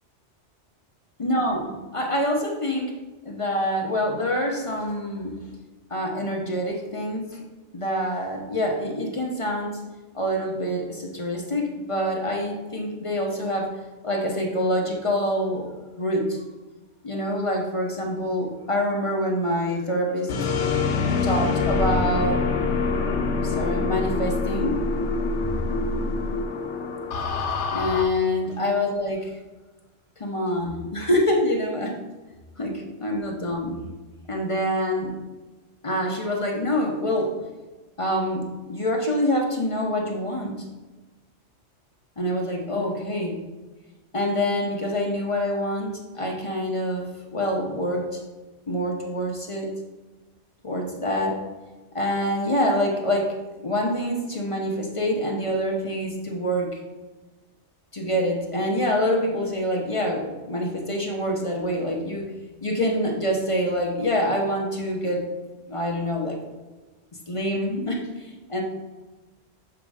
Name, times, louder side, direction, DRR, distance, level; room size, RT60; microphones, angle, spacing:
voice 1, 1.2-3.0 3.2-5.4 5.9-7.4 7.7-9.8 10.1-13.7 14.0-15.7 16.0-16.4 17.0-20.4 21.2-24.8 27.7-29.3 30.2-32.0 32.6-33.8 34.3-35.1 35.8-37.4 38.0-40.7 42.2-43.4 44.1-48.2 48.7-49.7 50.6-51.4 51.9-56.8 57.9-62.3 62.6-65.2 65.7-66.4 67.3-68.6, equal, 35° left, 0 dB, 0.7 m, -26 dB
sound 1, 20.3-28.0, left 4 dB, 80° left, 1.0 m, -25 dB
6.9 x 3.1 x 4.8 m, 1.2 s
omnidirectional pair, 1.2 m